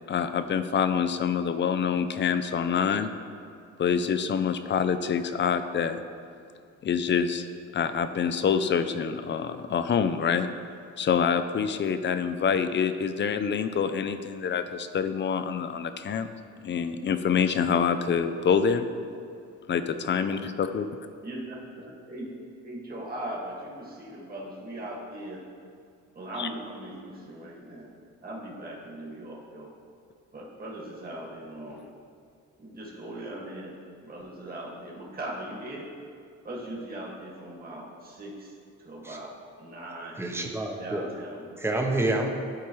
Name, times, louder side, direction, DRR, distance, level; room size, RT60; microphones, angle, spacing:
voice 1, 0.1-3.1 3.8-6.0 6.8-7.4 7.7-10.5 11.0-16.3 16.6-18.8 19.7-20.9 26.4-26.5, left 7 dB, 40° left, 10 dB, 0.5 m, -26 dB
voice 2, 21.2-22.3 22.6-25.5 26.1-27.9 28.2-29.7 30.3-31.8 32.6-35.9 36.4-40.2 40.8-41.6, right 1 dB, 30° right, -4 dB, 1.9 m, -39 dB
voice 3, 40.2-41.1 41.6-42.3, right 2 dB, 10° right, 2 dB, 0.9 m, -28 dB
11.5 x 4.6 x 3.2 m, 2.4 s
cardioid pair, 90°, 30 cm